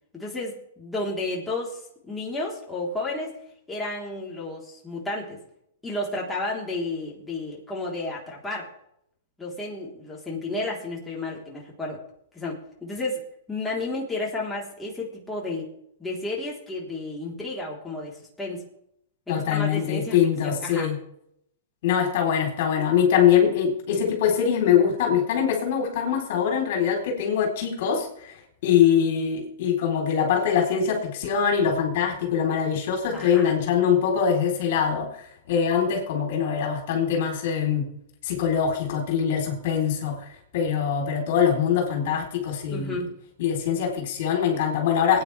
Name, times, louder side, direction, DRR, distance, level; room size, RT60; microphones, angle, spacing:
voice 1, 0.1-3.4 3.7-5.4 5.8-8.7 9.4-12.0 12.3-15.7 16.0-18.6 19.3-20.2 20.4-20.9 33.1-33.5 42.7-43.1, left 2 dB, 10° left, -4 dB, 4.1 m, -32 dB
voice 2, 19.3-21.0 21.8-28.4 28.6-37.9 38.2-43.0 43.4-45.2, left 8 dB, 60° left, 1 dB, 4.2 m, -23 dB
20.0 x 9.9 x 3.6 m, 0.71 s
hypercardioid pair, 130°, 0 cm